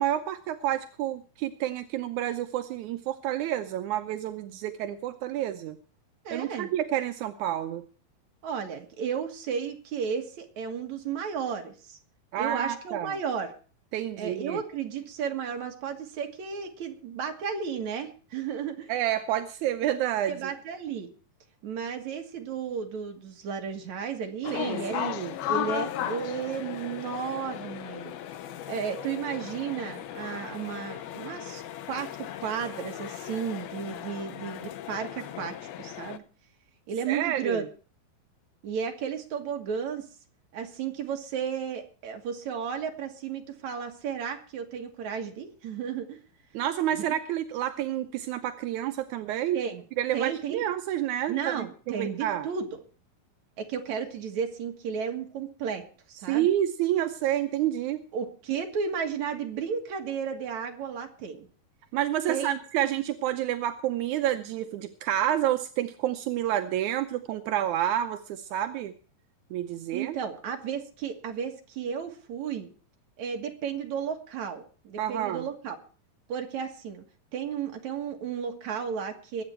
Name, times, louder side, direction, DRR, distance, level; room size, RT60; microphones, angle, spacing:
voice 1, 0.0-5.8 6.3-7.8 12.3-13.1 13.9-14.6 18.9-20.4 24.5-25.3 37.1-37.7 46.5-49.6 50.0-52.5 56.3-58.0 61.9-68.9 69.5-70.2 75.0-75.4, right 12 dB, 80° right, 8 dB, 1.7 m, -29 dB
voice 2, 6.2-6.7 8.4-12.0 12.4-13.6 14.2-18.9 20.3-21.1 21.6-25.0 25.5-28.1 28.7-31.6 31.9-36.2 36.9-37.6 38.6-40.1 40.5-46.2 46.9-47.0 49.5-49.8 50.1-50.6 51.3-52.7 53.6-55.8 56.1-56.5 58.1-61.5 62.3-62.6 69.9-72.7 73.2-75.8 76.3-77.0 77.3-79.4, right 7 dB, 55° right, 4 dB, 2.6 m, -33 dB
sound 1, 24.4-36.2, left 11 dB, 85° left, 2.8 m, -36 dB
22.5 x 8.7 x 4.4 m, 0.39 s
omnidirectional pair, 4.3 m